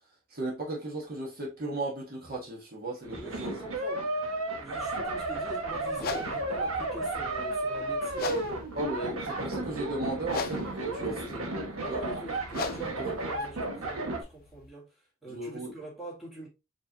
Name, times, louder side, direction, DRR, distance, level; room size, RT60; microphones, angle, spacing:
voice 1, 0.3-3.5 4.9-5.1 8.7-11.4 11.9-12.0 13.0-13.2 15.3-15.7, right 2 dB, 45° right, 1.1 m, -36 dB
sound 1, 3.0-14.2, right 2 dB, 85° right, 1.0 m, -33 dB
voice 2, 3.2-4.1 4.4-8.7 11.0-16.5, right 2 dB, ahead, 2.0 m, -44 dB
sound 2, 5.9-14.7, left 4 dB, 45° left, 0.5 m, -40 dB
4.6 x 3.1 x 2.7 m
head